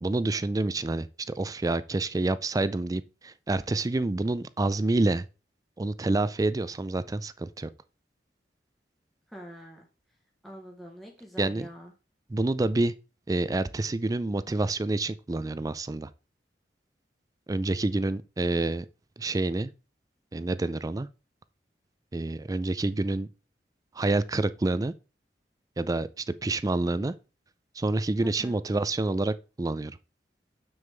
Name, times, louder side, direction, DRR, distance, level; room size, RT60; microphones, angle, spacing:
voice 1, 0.0-5.3 5.8-7.7 11.4-11.7 12.3-12.9 13.3-16.1 17.5-18.9 19.2-19.7 20.3-21.1 22.1-23.3 24.0-24.9 25.8-27.1 27.8-30.0, right 2 dB, 20° right, 0.4 m, -28 dB
voice 2, 9.3-9.8 10.4-11.9 28.2-28.6, equal, ahead, 1.1 m, -45 dB
7.1 x 6.5 x 3.4 m
head